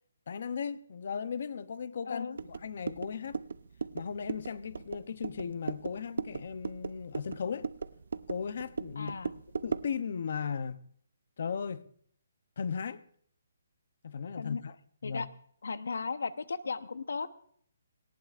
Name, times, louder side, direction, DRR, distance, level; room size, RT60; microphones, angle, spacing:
voice 1, 0.3-3.4 3.9-7.7 8.3-9.1 9.6-10.8 11.4-11.8 12.6-13.0 14.0-14.8 15.0-15.3, left 6 dB, 45° left, 0.6 m, -36 dB
voice 2, 2.1-2.4 9.0-9.3 14.4-14.6 15.0-15.3 15.6-17.3, left 4 dB, 75° left, 0.8 m, -36 dB
sound 1, 2.4-10.0, right 5 dB, 65° right, 0.6 m, -38 dB
18.5 x 18.0 x 2.5 m
hypercardioid pair, 175°, 0 cm